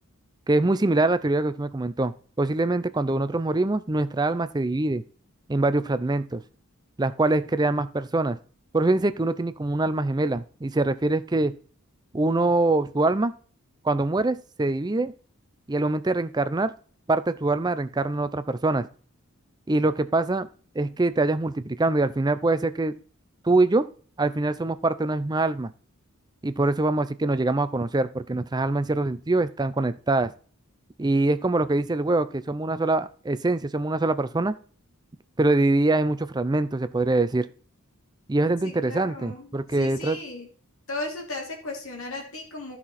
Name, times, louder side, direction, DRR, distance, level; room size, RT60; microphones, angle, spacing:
voice 1, 0.5-5.0 5.5-6.4 7.0-8.4 8.7-11.5 12.1-13.3 13.8-15.1 15.7-16.7 17.1-18.9 19.7-20.5 20.8-22.9 23.4-23.9 24.2-25.7 26.4-30.3 31.0-34.5 35.4-37.5 38.3-40.2, right 2 dB, 20° right, 12 dB, 0.5 m, -24 dB
voice 2, 38.6-40.5 40.9-42.8, left 2 dB, 70° left, 1 dB, 2.8 m, -36 dB
12.5 x 5.9 x 4.2 m, 0.42 s
head